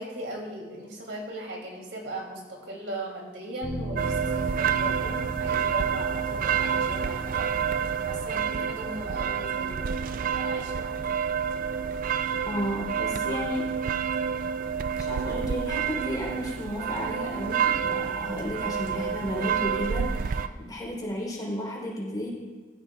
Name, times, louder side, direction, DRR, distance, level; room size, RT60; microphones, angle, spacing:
voice 1, 0.0-7.4 8.1-11.0, right 1 dB, 80° right, -1 dB, 2.8 m, -38 dB
Bass guitar, 3.6-9.9, right 2 dB, 75° left, 2.3 m, -40 dB
sound 1, 4.0-20.5, right 7 dB, 50° right, 0.3 m, -28 dB
voice 2, 12.4-13.7 15.0-22.3, equal, 25° left, -3 dB, 3.6 m, -33 dB
15.0 x 14.0 x 2.4 m, 1.5 s
head